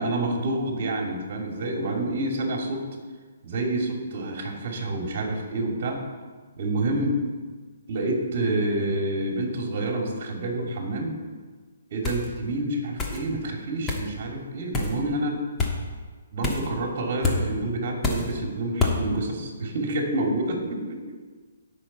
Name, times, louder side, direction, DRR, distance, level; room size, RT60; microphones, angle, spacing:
voice 1, 0.0-2.8 3.4-6.0 6.6-7.2 7.9-11.1 11.9-15.4 16.3-21.0, right 2 dB, 50° right, 1 dB, 2.6 m, -28 dB
sound 1, 12.0-12.3 13.0-13.2 13.9-14.1 14.7-15.0 15.6-15.8 16.4-16.7 17.2-17.4 18.0-18.3 18.8-19.0, left 4 dB, 15° left, 1.3 m, -26 dB
17.0 x 6.4 x 4.3 m, 1.5 s
hypercardioid pair, 160°, 0 cm